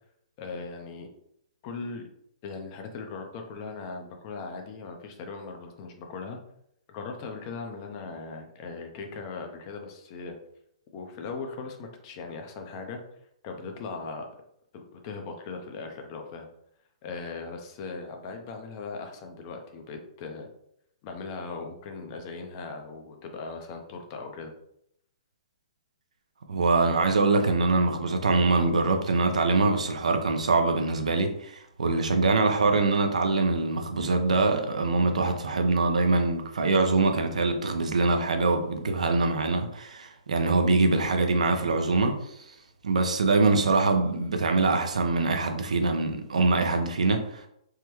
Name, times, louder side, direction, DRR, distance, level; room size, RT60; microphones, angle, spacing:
voice 1, 0.4-1.1 1.6-2.1 2.4-6.4 6.9-10.4 10.9-13.0 13.4-14.3 14.7-16.5 17.0-20.5 21.0-24.5, left 4 dB, 40° left, 0.6 m, -39 dB
voice 2, 26.5-42.2 42.8-47.5, right 3 dB, 85° right, 0.5 m, -24 dB
3.5 x 2.2 x 3.0 m
hypercardioid pair, 140°, 4 cm